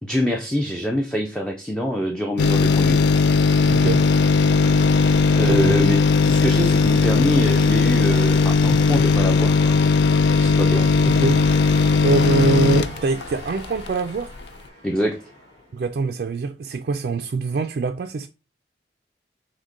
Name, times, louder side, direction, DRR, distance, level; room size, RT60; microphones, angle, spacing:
voice 1, 0.0-3.0 5.0-6.0 6.2-9.8 10.3-10.9 14.8-15.2, equal, 5° left, 0.5 m, -25 dB
sound 1, 2.4-14.0 14.4-14.5, left 4 dB, 75° left, 0.4 m, -17 dB
voice 2, 3.7-4.1 5.5-5.8 11.0-11.4 12.0-14.3 15.7-18.3, right 4 dB, 55° right, 0.3 m, -24 dB
sound 2, 10.7-15.9, left 1 dB, 35° left, 2.2 m, -40 dB
6.0 x 2.2 x 3.7 m
head